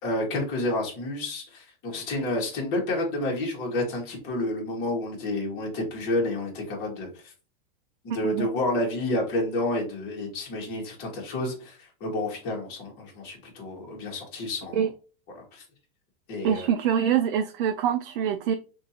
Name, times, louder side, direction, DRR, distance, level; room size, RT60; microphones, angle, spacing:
voice 1, 0.0-7.3 8.0-14.8 15.4-15.6 16.3-16.7, left 1 dB, 35° left, 1.9 m, -30 dB
voice 2, 16.4-18.5, right 8 dB, 65° right, 0.5 m, -25 dB
5.9 x 2.8 x 2.8 m
supercardioid pair, 160°, 29 cm